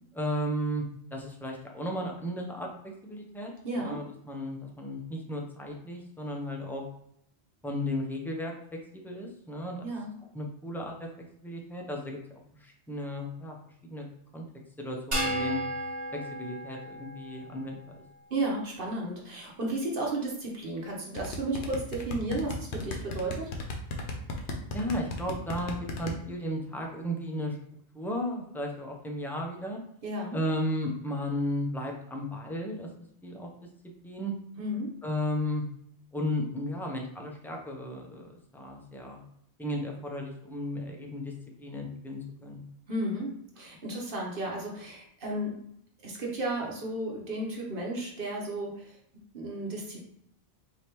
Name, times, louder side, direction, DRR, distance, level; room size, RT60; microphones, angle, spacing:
voice 1, 0.1-0.8 1.1-3.5 3.8-6.8 7.6-9.9 10.3-11.1 11.4-12.2 12.6-13.6 13.8-14.0 14.3-14.5 14.8-15.6 16.1-18.0 24.7-27.6 27.9-29.8 30.3-32.9 33.2-33.5 34.0-34.3 35.0-35.6 36.1-39.2 39.6-41.3 41.6-42.6, left 1 dB, 5° left, 0 dB, 0.5 m, -34 dB
voice 2, 3.6-4.0 9.8-10.1 18.3-23.5 30.0-30.4 34.6-34.9 42.9-43.3 43.6-45.6 46.0-49.0 49.3-50.0, right 1 dB, 55° right, -2 dB, 1.1 m, -33 dB
sound 1, 15.1-17.7, right 1 dB, 30° right, 0.8 m, -34 dB
sound 2, 21.2-26.1, left 3 dB, 80° left, 1.0 m, -35 dB
4.9 x 2.8 x 3.0 m, 0.70 s
omnidirectional pair, 1.1 m